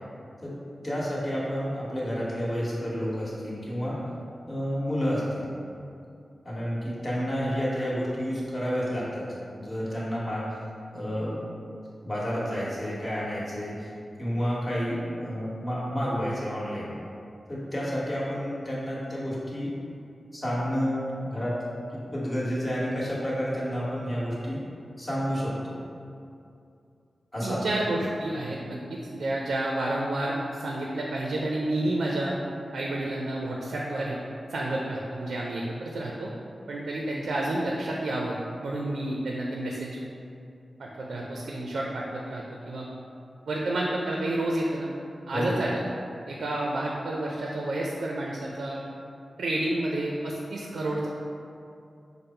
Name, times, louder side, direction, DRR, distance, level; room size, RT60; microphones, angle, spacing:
voice 1, 0.8-4.0 4.5-5.5 6.4-9.2 9.6-10.4 10.9-11.4 12.0-13.9 14.2-16.9 17.5-19.7 20.3-21.6 21.9-24.6 25.0-25.8 27.3-27.7 45.3-45.5, equal, 30° left, -8 dB, 1.4 m, -30 dB
voice 2, 27.4-32.3 32.7-34.2 34.5-36.3 36.7-40.0 40.8-42.9 43.5-44.9 45.3-45.8 46.3-48.8 49.4-51.1, right 1 dB, 90° right, -2 dB, 0.4 m, -30 dB
5.2 x 2.0 x 4.3 m, 2.5 s
cardioid pair, 65°, 0 cm